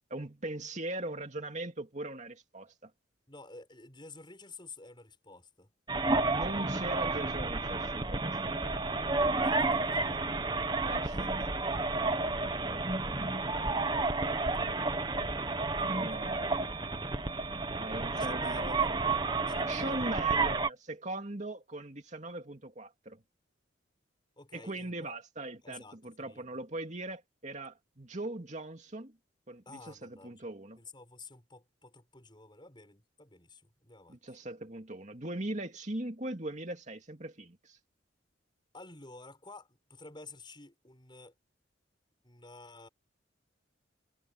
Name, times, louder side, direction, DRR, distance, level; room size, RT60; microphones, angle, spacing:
voice 1, 0.1-2.9 6.2-8.7 10.8-11.3 15.9-16.7 17.7-18.9 19.6-23.2 24.5-29.2 29.5-30.8 34.1-37.8, right 2 dB, 40° right, 2.5 m, -40 dB
voice 2, 3.3-5.7 9.4-10.4 11.0-12.0 15.4-16.4 18.2-18.9 19.4-20.1 24.4-25.1 25.6-26.6 29.7-30.5 30.8-34.2 38.7-41.3 42.2-42.9, left 3 dB, 25° left, 6.9 m, -52 dB
sound 1, 5.9-20.7, right 3 dB, 25° right, 1.3 m, -31 dB
head